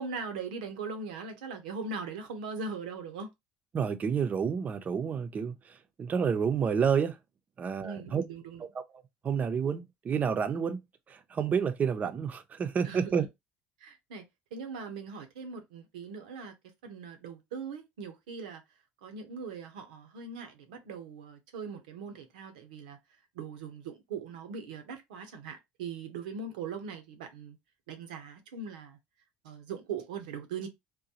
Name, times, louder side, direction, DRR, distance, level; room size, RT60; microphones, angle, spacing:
voice 1, 0.0-3.3 7.8-8.6 12.8-13.1 13.8-14.3 14.5-16.5 16.8-18.6 19.0-23.0 23.3-27.6 27.9-29.0 29.4-30.7, right 5 dB, 90° right, 0.8 m, -40 dB
voice 2, 3.7-7.2 7.6-8.2 8.6-8.8 9.2-10.8 11.1-13.2, right 6 dB, 35° right, 0.6 m, -29 dB
3.9 x 2.2 x 2.8 m
supercardioid pair, 80°, 4 cm